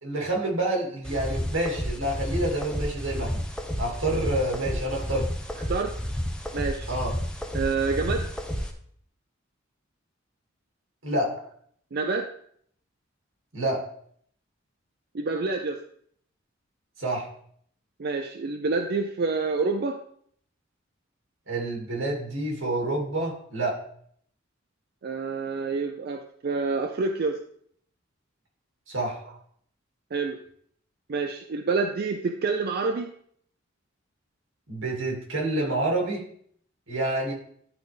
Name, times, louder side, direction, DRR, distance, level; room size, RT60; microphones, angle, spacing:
voice 1, 0.0-3.4 3.8-5.3 6.9-7.1 11.0-11.3 13.5-13.8 17.0-17.3 21.5-23.8 28.9-29.2 34.7-36.2 36.9-37.3, right 1 dB, 85° right, -1 dB, 2.3 m, -28 dB
sound 1, 1.0-8.7, equal, 5° left, 0.7 m, -31 dB
voice 2, 6.5-6.9 7.5-8.3 11.9-12.3 15.1-15.8 18.0-20.0 25.0-27.4 30.1-30.4 31.1-33.1, right 4 dB, 55° right, 5 dB, 0.5 m, -27 dB
11.5 x 4.0 x 3.4 m, 0.63 s
head